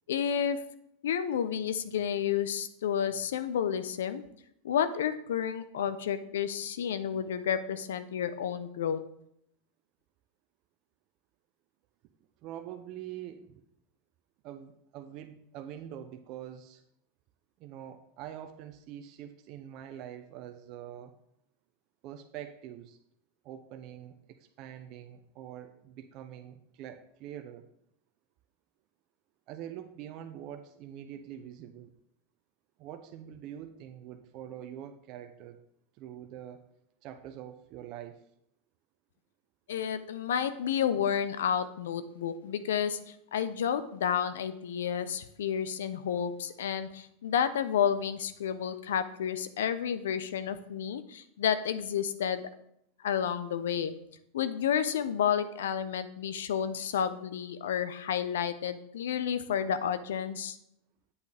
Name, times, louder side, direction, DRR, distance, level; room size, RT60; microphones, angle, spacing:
voice 1, 0.1-0.6 1.0-4.2 4.6-9.0 39.7-52.5 53.0-54.0 54.3-60.6, left 8 dB, 80° left, 12 dB, 0.6 m, -31 dB
voice 2, 12.4-13.6 14.4-16.8 17.6-21.1 22.0-23.0 23.4-27.7 29.5-31.9 32.8-35.6 36.0-36.7 37.0-38.2, right 10 dB, 50° right, 6 dB, 0.6 m, -44 dB
8.3 x 8.1 x 3.5 m, 0.75 s
hypercardioid pair, 105°, 0 cm